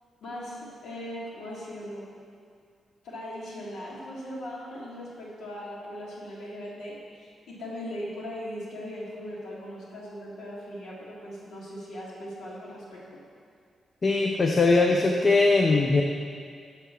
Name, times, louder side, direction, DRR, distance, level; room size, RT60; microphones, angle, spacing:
voice 1, 0.2-2.1 3.0-13.0, equal, 90° left, -6 dB, 1.9 m, -39 dB
voice 2, 14.0-16.0, left 3 dB, 25° left, 2 dB, 0.4 m, -21 dB
6.8 x 5.6 x 6.1 m, 2.2 s
wide cardioid pair, 175°, 0 cm